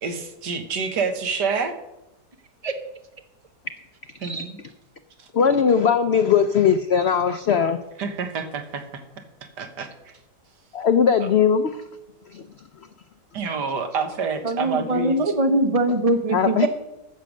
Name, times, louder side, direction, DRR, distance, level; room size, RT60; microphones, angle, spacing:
voice 1, 0.0-1.7 4.2-4.6 5.2-5.3 8.0-9.0 9.6-10.1 13.3-15.2, right 5 dB, 75° right, 6 dB, 1.8 m, -28 dB
voice 2, 5.3-7.8 10.7-11.8 12.3-12.4 16.3-16.7, left 7 dB, 75° left, 10 dB, 0.6 m, -19 dB
voice 3, 14.4-16.7, right 2 dB, 25° right, 6 dB, 1.0 m, -22 dB
14.5 x 6.6 x 6.4 m, 0.91 s
omnidirectional pair, 1.9 m